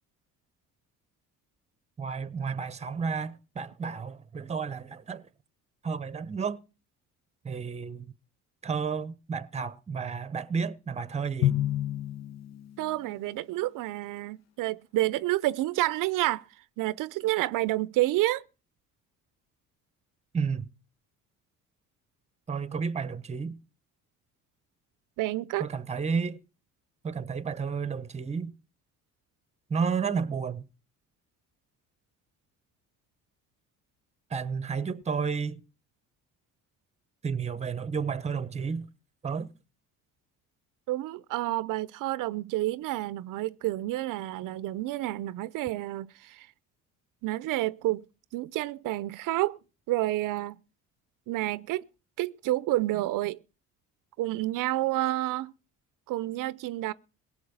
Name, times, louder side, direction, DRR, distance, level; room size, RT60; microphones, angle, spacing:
voice 1, 2.0-5.2 5.8-6.6 7.4-8.1 8.6-11.5 20.3-20.7 22.5-23.6 25.6-26.4 27.0-28.5 29.7-30.7 34.3-35.6 37.2-38.9 39.2-39.5, right 5 dB, 20° right, 0.9 m, -31 dB
Drum, 11.4-13.2, left 13 dB, 55° left, 0.7 m, -29 dB
voice 2, 12.8-16.5 16.8-18.4 25.2-25.7 40.9-46.5 47.2-48.0 48.3-49.6 49.9-50.6 51.3-51.9 52.2-53.4 54.2-55.5 56.1-56.9, right 17 dB, 75° right, 0.6 m, -29 dB
17.5 x 6.3 x 8.7 m
cardioid pair, 105°, 32 cm